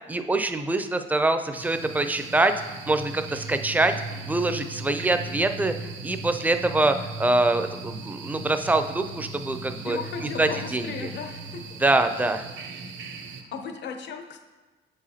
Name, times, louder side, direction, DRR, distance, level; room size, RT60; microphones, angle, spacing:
voice 1, 0.1-2.5 2.9-3.9 4.2-5.7 6.0-10.0 10.4-11.1 11.8-12.5, right 2 dB, 10° right, 8 dB, 0.4 m, -24 dB
sound 1, 1.5-13.4, right 3 dB, 70° right, 0.8 m, -38 dB
voice 2, 9.8-11.6 13.5-14.4, left 5 dB, 60° left, 5 dB, 0.7 m, -35 dB
7.1 x 4.8 x 2.8 m, 1.2 s
cardioid pair, 90°, 20 cm